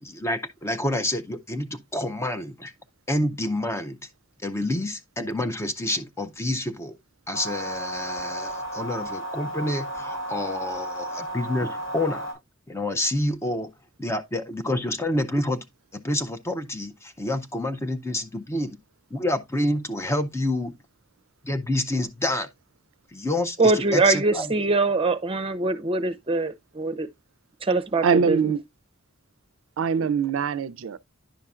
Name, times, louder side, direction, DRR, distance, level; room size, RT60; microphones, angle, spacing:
voice 1, 0.0-2.7 3.1-4.0 4.4-7.0 7.3-12.3 12.7-13.7 14.0-15.6 15.9-18.8 19.1-20.7 21.4-22.5 23.1-24.5, left 1 dB, 15° left, 0.5 m, -28 dB
sound 1, 7.3-12.3, right 1 dB, 85° left, 4.8 m, -33 dB
voice 2, 23.6-27.1 27.6-28.4, right 3 dB, 25° right, 0.7 m, -23 dB
voice 3, 28.0-28.6 29.8-31.0, right 6 dB, 75° right, 0.4 m, -23 dB
10.0 x 5.5 x 2.4 m
head